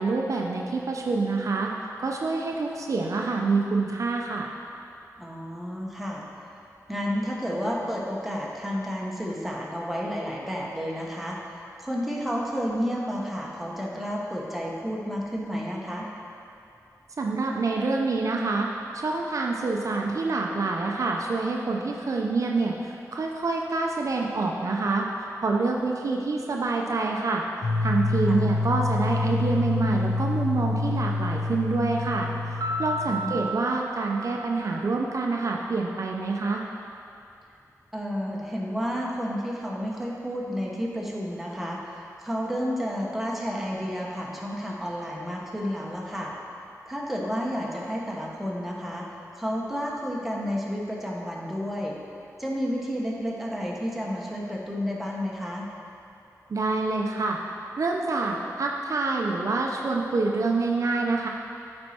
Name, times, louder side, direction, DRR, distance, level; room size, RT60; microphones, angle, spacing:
voice 1, 0.0-4.5 17.2-18.7 18.9-25.1 25.4-36.6 56.5-57.4 57.8-61.3, right 3 dB, 60° right, 0 dB, 0.6 m, -27 dB
voice 2, 5.2-6.2 6.9-11.4 11.8-16.1 28.3-28.5 33.1-33.5 37.9-46.3 46.8-49.1 49.4-52.0 52.4-55.7, equal, 5° right, -3 dB, 1.0 m, -31 dB
sound 1, 27.6-33.5, left 3 dB, 70° left, 0.7 m, -27 dB
Piano, 32.6-35.4, right 1 dB, 85° right, 1.0 m, -33 dB
8.8 x 4.3 x 4.3 m, 2.6 s
wide cardioid pair, 95°, 6 cm